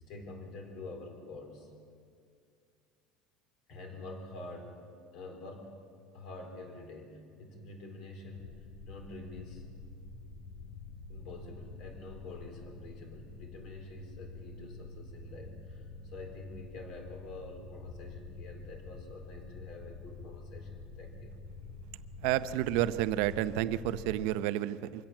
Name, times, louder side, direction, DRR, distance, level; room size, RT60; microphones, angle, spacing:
voice 1, 0.1-1.7 3.7-4.8 5.1-9.7 11.1-21.4, left 2 dB, 50° left, 4 dB, 3.8 m, -47 dB
sound 1, 8.3-24.2, left 3 dB, 90° left, 2.2 m, -47 dB
voice 2, 22.2-25.0, right 13 dB, 65° right, 13 dB, 0.7 m, -30 dB
24.5 x 16.5 x 7.4 m, 2.4 s
cardioid pair, 170°, 0 cm